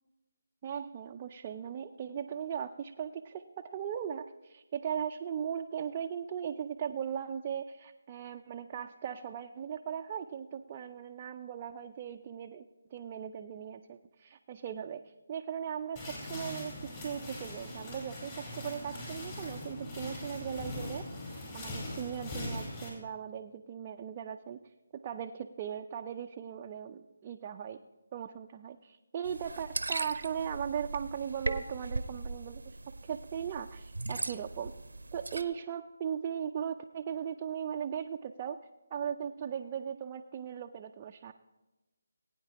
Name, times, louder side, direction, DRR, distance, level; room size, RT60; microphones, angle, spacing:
voice 1, 0.6-21.1 21.5-24.6 24.9-27.8 28.1-32.6 33.0-34.7 35.1-38.6 38.9-41.3, right 8 dB, 25° right, 3 dB, 0.4 m, -38 dB
sound 1, 16.0-22.9, left 1 dB, 30° left, 4.9 m, -41 dB
sound 2, 29.2-35.4, right 2 dB, 90° right, 0.7 m, -39 dB
21.0 x 9.2 x 3.0 m, 1.1 s
figure-of-eight pair, 160°, 0 cm